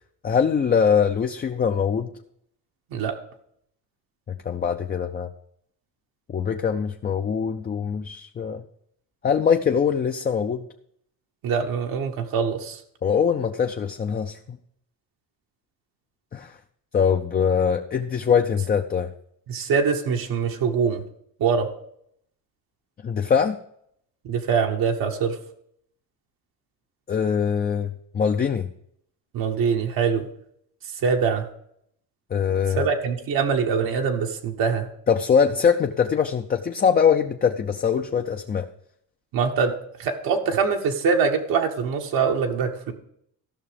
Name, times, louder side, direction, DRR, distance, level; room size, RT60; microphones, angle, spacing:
voice 1, 0.2-2.1 4.3-5.3 6.3-8.6 9.2-10.7 13.0-14.6 16.3-16.6 16.9-19.1 23.0-23.6 27.1-28.7 32.3-32.8 35.1-38.7, left 7 dB, 25° left, 5 dB, 0.5 m, -22 dB
voice 2, 11.4-12.8 19.5-21.0 21.4-21.7 24.2-25.4 29.3-30.3 31.0-31.5 32.8-34.9 39.3-39.7 40.0-42.9, right 6 dB, 70° right, 3 dB, 1.2 m, -23 dB
13.5 x 6.0 x 5.0 m, 0.71 s
cardioid pair, 115°, 36 cm